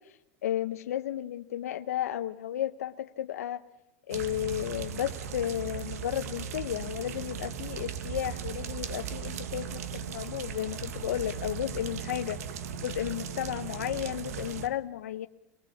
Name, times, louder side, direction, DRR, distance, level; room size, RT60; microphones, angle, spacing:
voice 1, 0.4-3.6 4.1-12.4 12.8-15.3, left 11 dB, 90° left, 9 dB, 0.8 m, -33 dB
sound 1, 4.1-14.7, right 8 dB, 80° right, 1.5 m, -37 dB
22.5 x 19.5 x 7.1 m, 0.84 s
supercardioid pair, 150°, 8 cm